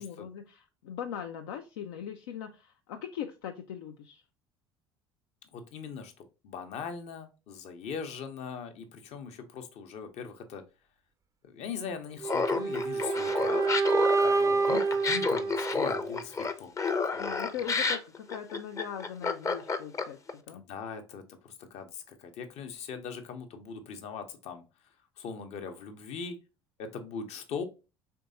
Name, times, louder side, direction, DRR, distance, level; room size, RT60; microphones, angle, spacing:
voice 1, 0.0-4.2 17.2-20.6, left 9 dB, 70° left, 5 dB, 0.4 m, -40 dB
voice 2, 5.5-10.6 11.4-16.7 17.1-17.3 20.5-24.6 25.2-26.4 26.8-27.6, left 5 dB, 55° left, 7 dB, 0.8 m, -41 dB
sound 1, 12.2-16.2, right 4 dB, 25° right, 0.4 m, -28 dB
Laughter, 12.3-20.3, left 4 dB, 25° left, 0.6 m, -30 dB
4.4 x 3.3 x 2.6 m, 0.30 s
figure-of-eight pair, 60°, 13 cm